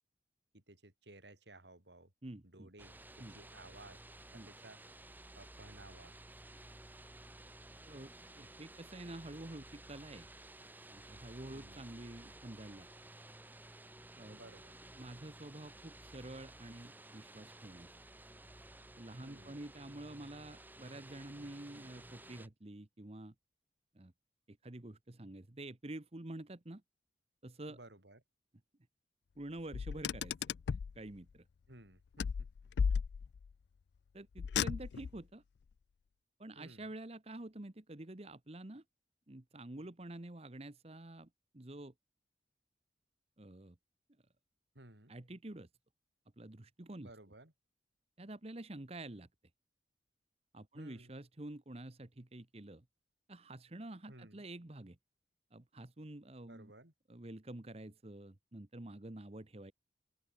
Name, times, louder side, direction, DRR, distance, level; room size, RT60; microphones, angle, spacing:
voice 1, 0.5-2.1 2.4-4.0 4.3-4.8 5.3-6.1 11.5-11.8 14.3-14.7 19.2-19.6 27.7-28.2 31.7-32.5 36.5-36.9 44.7-45.1 47.0-47.5 50.7-51.1 54.1-54.4 56.5-56.9, right 2 dB, 75° right, 4.9 m, -57 dB
voice 2, 2.2-2.7 3.2-3.4 4.3-4.5 7.9-10.3 10.9-12.9 14.2-14.4 15.0-17.9 19.0-23.3 23.9-24.1 24.5-26.8 27.4-27.8 29.4-30.4 30.9-31.4 34.1-35.4 36.4-38.8 39.3-41.3 41.5-41.9 43.4-43.8 45.1-45.7 46.4-47.1 48.2-49.3 50.5-52.8 53.3-55.0 55.5-56.7 57.1-59.7, right 1 dB, 35° right, 1.1 m, -48 dB
sound 1, 2.8-22.5, right 1 dB, 10° right, 2.7 m, -55 dB
Car, 29.7-31.0 32.2-33.5 34.4-35.2, left 6 dB, 70° left, 0.3 m, -35 dB
open air
head